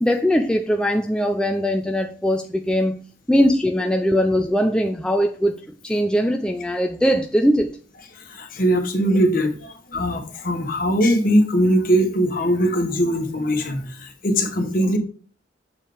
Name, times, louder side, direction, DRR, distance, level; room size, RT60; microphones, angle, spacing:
voice 1, 0.0-3.0 3.3-5.5 5.8-7.7, equal, 5° left, 0.5 m, -20 dB
voice 2, 8.1-15.0, equal, 45° left, 1.4 m, -21 dB
7.3 x 4.6 x 5.0 m
head